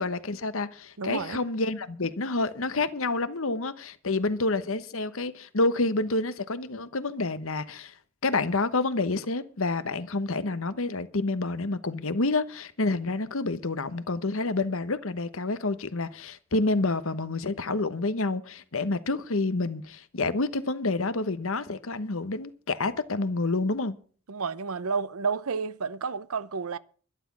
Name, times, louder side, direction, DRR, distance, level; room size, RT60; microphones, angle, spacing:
voice 1, 0.0-7.9 8.2-24.0, left 3 dB, 65° left, 1.1 m, -28 dB
voice 2, 1.0-1.4 24.3-26.8, right 5 dB, 75° right, 0.7 m, -31 dB
12.0 x 12.0 x 6.1 m
head